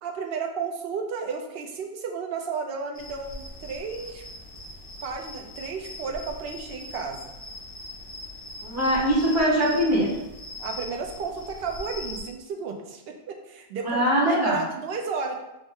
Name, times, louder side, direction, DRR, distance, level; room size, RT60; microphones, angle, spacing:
voice 1, 0.0-4.2 5.0-7.3 10.6-14.1 14.5-15.4, right 5 dB, 70° right, 3 dB, 0.8 m, -33 dB
sound 1, 2.9-12.2, left 2 dB, 60° left, 1.3 m, -41 dB
voice 2, 8.6-10.1 13.8-14.6, equal, 20° right, -7 dB, 0.9 m, -22 dB
6.0 x 2.1 x 3.6 m, 0.95 s
omnidirectional pair, 1.1 m